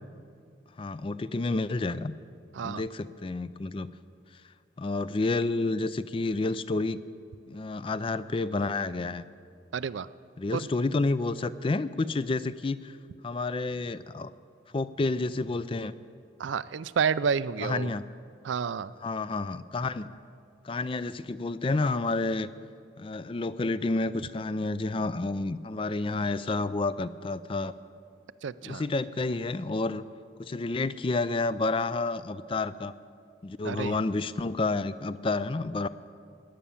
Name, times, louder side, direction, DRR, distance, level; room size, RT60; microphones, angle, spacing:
voice 1, 0.8-2.1 2.6-3.9 4.8-7.0 7.5-9.2 10.4-13.0 13.2-14.3 14.7-15.9 17.6-18.1 19.0-20.1 20.6-22.5 23.0-27.7 28.6-30.0 30.4-32.9 33.4-35.9, left 3 dB, 30° left, 15 dB, 0.4 m, -30 dB
voice 2, 9.7-10.1 10.5-10.7 16.4-17.9 18.4-18.9 28.4-28.8 33.6-34.0, right 6 dB, 85° right, 16 dB, 0.4 m, -30 dB
16.5 x 10.0 x 7.1 m, 2.3 s
head